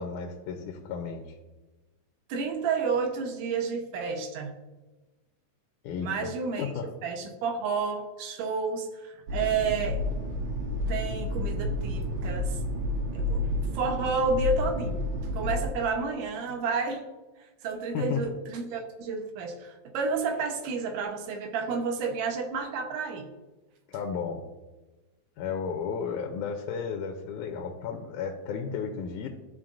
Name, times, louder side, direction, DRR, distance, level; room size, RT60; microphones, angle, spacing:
voice 1, 0.0-1.3 5.8-6.3 6.6-6.9 11.9-12.0 17.9-18.2 23.9-24.4 25.4-29.3, left 6 dB, 80° left, 3 dB, 2.1 m, -33 dB
voice 2, 2.3-4.5 6.0-6.7 7.0-10.0 10.9-12.6 13.1-13.4 13.7-15.1 15.3-17.0 17.6-23.3, right 4 dB, 85° right, 4 dB, 2.5 m, -30 dB
sound 1, 9.3-15.7, left 1 dB, 65° right, 2.2 m, -30 dB
13.5 x 5.4 x 2.5 m, 1.2 s
omnidirectional pair, 3.7 m